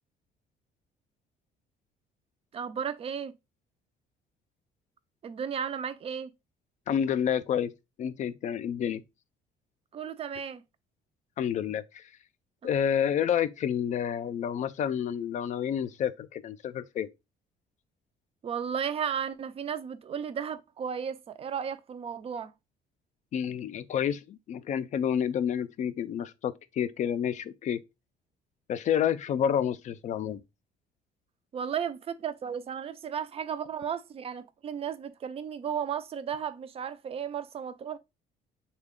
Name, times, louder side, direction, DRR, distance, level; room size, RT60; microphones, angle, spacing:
voice 1, 2.5-3.3 5.2-6.3 9.9-10.6 12.6-12.7 18.4-22.5 31.5-38.0, right 7 dB, 35° right, 0.4 m, -34 dB
voice 2, 6.9-7.7 8.0-9.0 11.4-12.1 12.6-17.1 23.3-27.8 28.7-30.4, left 9 dB, 45° left, 0.4 m, -29 dB
3.3 x 2.2 x 3.6 m
cardioid pair, 110°, 17 cm